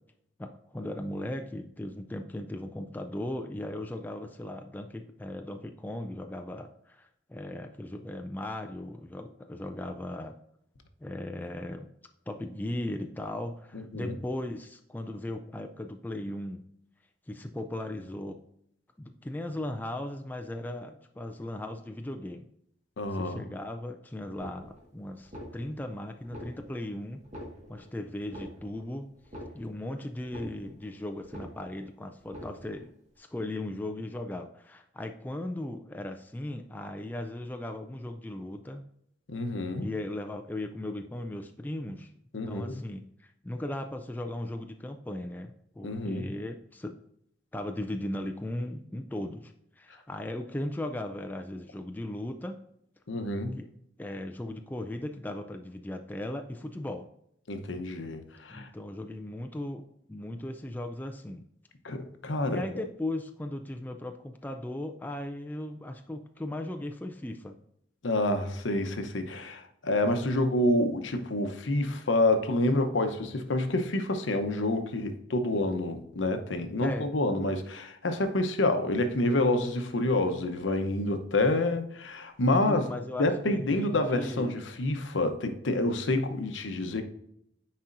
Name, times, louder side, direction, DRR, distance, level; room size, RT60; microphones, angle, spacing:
voice 1, 0.4-10.4 11.0-11.9 12.3-16.6 17.3-18.4 19.0-22.5 23.1-27.2 27.7-29.1 29.5-38.8 39.8-42.1 42.5-47.0 47.5-52.6 53.6-53.7 54.0-57.1 58.5-59.8 60.1-61.4 62.4-67.6 76.8-77.1 82.5-84.6, left 1 dB, 10° left, 5 dB, 0.3 m, -37 dB
voice 2, 13.7-14.2 23.0-23.4 39.3-39.9 42.3-42.9 45.8-46.3 53.1-53.6 57.5-58.7 61.8-62.6 68.0-82.9 83.2-87.0, left 2 dB, 80° left, 7 dB, 0.8 m, -28 dB
sound 1, 24.3-24.9 25.2-25.9 26.2-26.9 27.2-27.9 28.2-28.9 29.2-29.9 30.2-30.9 31.2-31.9 32.2-32.9, equal, 35° right, 1.6 m, -45 dB
9.6 x 4.2 x 2.6 m, 0.74 s
head